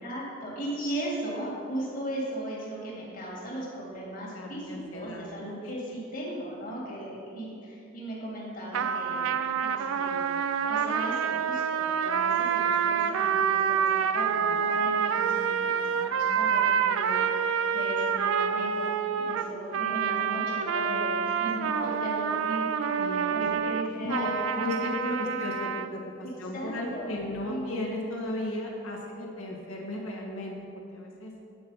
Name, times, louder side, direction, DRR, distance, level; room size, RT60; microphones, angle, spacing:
voice 1, 0.0-10.2 10.7-24.5 25.2-25.4 26.5-27.7, right 1 dB, 40° left, -4 dB, 1.8 m, -37 dB
voice 2, 4.3-5.3 23.0-23.5 24.0-24.3 24.5-26.0 26.4-31.3, left 1 dB, 80° left, -1 dB, 1.4 m, -35 dB
sound 1, 8.7-25.9, right 7 dB, 75° right, 0.3 m, -27 dB
8.6 x 4.5 x 5.5 m, 2.6 s
head